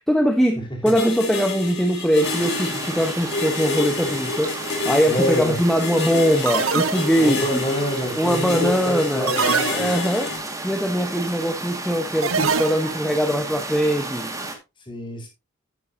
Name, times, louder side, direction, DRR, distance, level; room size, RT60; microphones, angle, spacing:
voice 1, 0.0-7.6 8.2-9.3 9.7-10.3 10.6-14.4, equal, ahead, 1.0 m, -21 dB
sound 1, 0.9-10.4, left 3 dB, 55° left, 3.7 m, -29 dB
sound 2, 2.2-14.6, right 2 dB, 15° right, 1.9 m, -33 dB
sound 3, 4.4-4.8 6.5-7.5 9.3-10.3 12.2-13.1, right 5 dB, 80° right, 0.9 m, -25 dB
voice 2, 5.1-5.6 7.2-9.9 14.9-15.3, left 1 dB, 25° left, 4.4 m, -26 dB
11.0 x 9.4 x 2.7 m
head